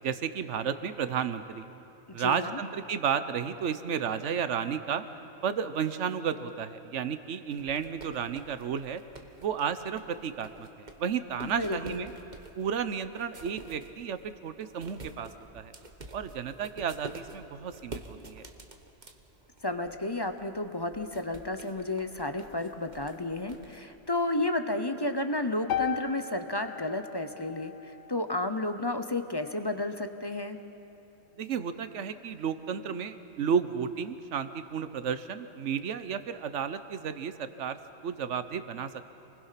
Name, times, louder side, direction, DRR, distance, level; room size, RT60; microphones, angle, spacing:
voice 1, 0.0-1.7 2.1-5.0 5.4-9.0 9.4-12.1 12.6-15.7 16.1-18.5 31.4-39.0, right 7 dB, 75° right, 11 dB, 1.2 m, -32 dB
voice 2, 2.1-2.6 11.4-12.0 19.6-30.6, left 2 dB, 25° left, 8 dB, 0.8 m, -32 dB
sound 1, 7.5-23.8, right 3 dB, 40° right, 1.3 m, -49 dB
sound 2, 25.7-29.9, left 9 dB, 80° left, 1.1 m, -38 dB
28.5 x 20.5 x 5.8 m, 2.9 s
omnidirectional pair, 1.2 m